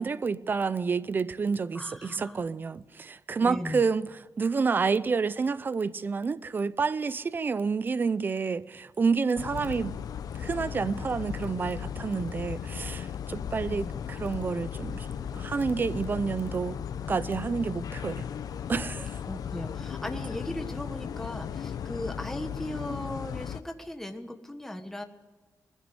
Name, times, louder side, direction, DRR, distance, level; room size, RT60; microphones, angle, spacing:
voice 1, 0.0-10.0 10.3-16.8 17.1-18.3 18.7-19.2, right 5 dB, 30° right, 0.6 m, -29 dB
voice 2, 1.7-2.4 3.4-3.8 13.5-13.9 19.2-25.0, left 1 dB, 5° left, 1.3 m, -37 dB
sound 1, 9.4-23.6, left 8 dB, 75° left, 0.8 m, -36 dB
20.5 x 15.5 x 9.8 m
wide cardioid pair, 175°, 6 cm